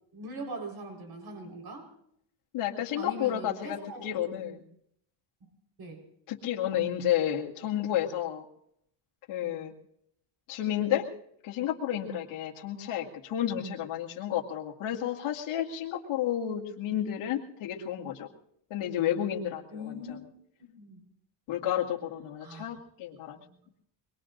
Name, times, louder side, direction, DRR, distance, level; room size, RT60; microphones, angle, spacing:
voice 1, 0.0-1.9 2.9-4.0 5.4-5.5 5.8-6.0 19.7-20.3 20.6-21.0 22.4-22.7 23.4-23.6, equal, 45° right, 3 dB, 4.6 m, -41 dB
voice 2, 2.5-4.6 6.3-8.5 9.3-9.7 10.5-11.1 11.4-18.3 18.7-20.2 21.5-23.4, left 11 dB, 75° left, -1 dB, 2.2 m, -31 dB
24.5 x 21.5 x 2.6 m, 0.71 s
cardioid pair, 120°, 50 cm